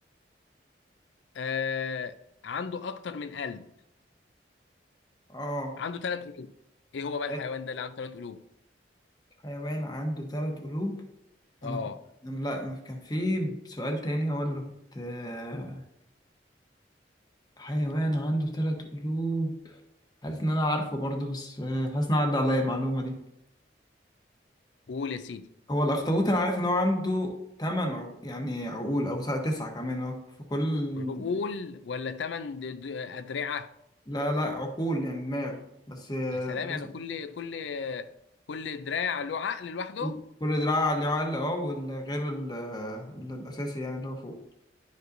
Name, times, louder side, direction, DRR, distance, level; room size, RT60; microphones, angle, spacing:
voice 1, 1.3-2.1 2.4-3.7 5.8-6.5 6.9-8.4 11.6-12.0 24.9-25.5 31.0-33.7 36.3-38.1 38.5-40.2, left 5 dB, 80° left, 0.4 m, -34 dB
voice 2, 5.3-5.7 7.3-7.4 9.4-11.0 11.6-11.8 12.2-14.6 14.9-15.8 17.6-19.8 20.2-23.2 25.7-30.2 30.5-31.3 34.1-35.6 35.9-36.8 40.0-44.4, equal, 25° left, 1.0 m, -30 dB
11.0 x 5.2 x 2.6 m
head